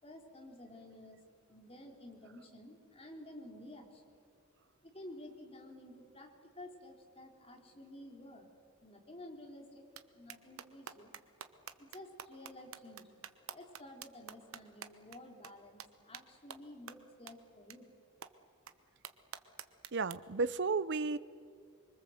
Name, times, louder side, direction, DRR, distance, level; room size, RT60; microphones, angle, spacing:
voice 1, 0.0-1.2 1.5-4.2 4.8-8.5 8.8-9.9 10.1-11.2 11.8-17.9, left 1 dB, 25° left, 2 dB, 3.5 m, -52 dB
sound 1, 10.0-10.1 10.3-15.2 15.4-15.5 15.8-15.9 16.1-16.2 16.5-16.6 16.9-17.0 17.3-17.4 17.7-17.8 18.2-18.3 18.7-18.8 19.0-20.1, right 8 dB, 70° right, 1.1 m, -47 dB
voice 2, 19.9-21.2, right 4 dB, 55° right, 17 dB, 0.7 m, -33 dB
25.5 x 23.5 x 7.9 m, 2.2 s
head